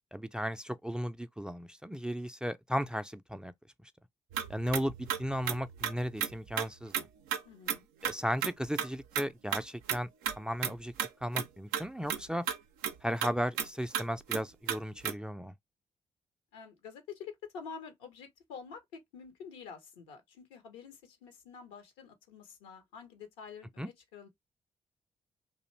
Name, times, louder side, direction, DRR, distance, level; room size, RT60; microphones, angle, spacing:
voice 1, 0.1-3.5 4.5-7.1 8.0-10.1 10.4-10.9 11.2-12.4 13.0-15.5 23.8-23.9, equal, 5° right, 0.3 m, -35 dB
sound 1, 4.3-7.0 7.3-7.4 7.7-7.8 8.0-8.1 8.4-8.5 8.8-8.9 9.1-9.6 9.9-10.4 10.6-10.7 11.0-11.1 11.3-11.5 11.7-11.8 12.1-12.2 12.5-12.6 12.8-12.9 13.2-13.3 13.6-13.7 13.9-14.0 14.3-14.4 14.7-14.8 15.0-15.1, right 9 dB, 80° right, 0.4 m, -33 dB
voice 2, 7.4-7.9 16.5-24.3, left 6 dB, 85° left, 0.6 m, -48 dB
2.5 x 2.1 x 3.0 m
hypercardioid pair, 40°, 14 cm